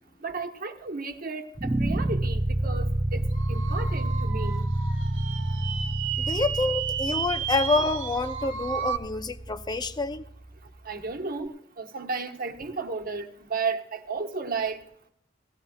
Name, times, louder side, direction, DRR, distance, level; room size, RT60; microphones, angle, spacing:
voice 1, 0.2-3.2 3.5-4.7 10.8-14.8, right 4 dB, 50° right, 1.3 m, -33 dB
sound 1, 1.6-10.7, right 1 dB, 15° right, 0.4 m, -29 dB
sound 2, 3.3-9.0, right 8 dB, 80° right, 1.0 m, -33 dB
voice 2, 6.2-10.3, left 3 dB, 20° left, 0.7 m, -27 dB
18.5 x 15.0 x 2.4 m
head